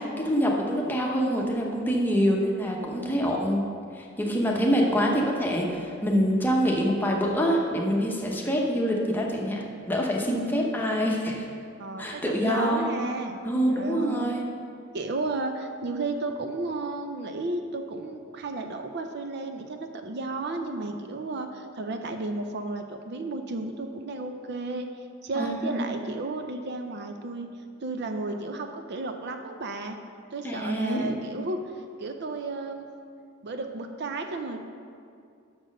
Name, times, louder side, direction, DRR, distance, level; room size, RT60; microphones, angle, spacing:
voice 1, 0.0-3.6 3.9-11.5 12.0-12.9 13.4-14.5 25.4-26.0 30.4-31.4, equal, 10° left, -1 dB, 0.9 m, -26 dB
voice 2, 11.8-13.4 13.7-14.4 14.9-24.9 25.2-27.5 27.8-30.0 30.3-32.8 33.4-34.6, right 2 dB, 55° right, 6 dB, 0.5 m, -33 dB
6.3 x 6.0 x 6.4 m, 2.3 s
head